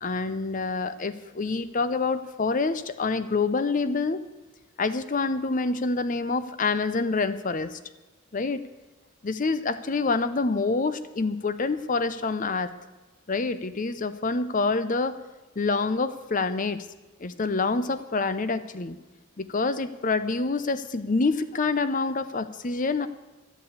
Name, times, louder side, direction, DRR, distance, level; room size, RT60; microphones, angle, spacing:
voice 1, 0.0-4.3 4.8-7.8 8.3-8.6 9.2-12.7 13.3-15.2 15.6-16.9 17.2-19.0 19.4-23.1, left 3 dB, 40° left, 13 dB, 0.7 m, -27 dB
12.5 x 8.3 x 8.3 m, 1.1 s
head